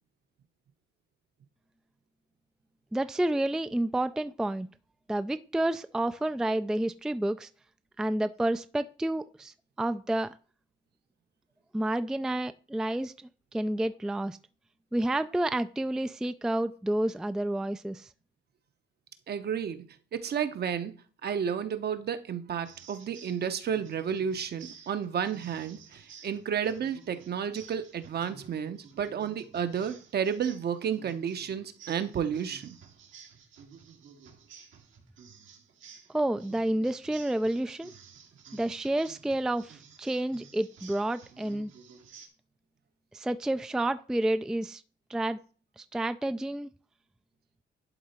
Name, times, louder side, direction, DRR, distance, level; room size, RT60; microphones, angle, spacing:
voice 1, 2.9-4.7 5.1-7.5 8.0-10.4 11.7-14.4 14.9-18.1 36.1-37.9 38.5-41.7 43.1-44.8 45.1-45.4 45.8-46.7, right 1 dB, 5° right, 0.4 m, -30 dB
voice 2, 19.3-19.8 20.1-20.9 21.2-32.8, right 7 dB, 55° right, 1.0 m, -32 dB
sound 1, 22.6-42.3, right 6 dB, 80° right, 1.9 m, -53 dB
11.0 x 3.8 x 4.4 m
cardioid pair, 90°, 20 cm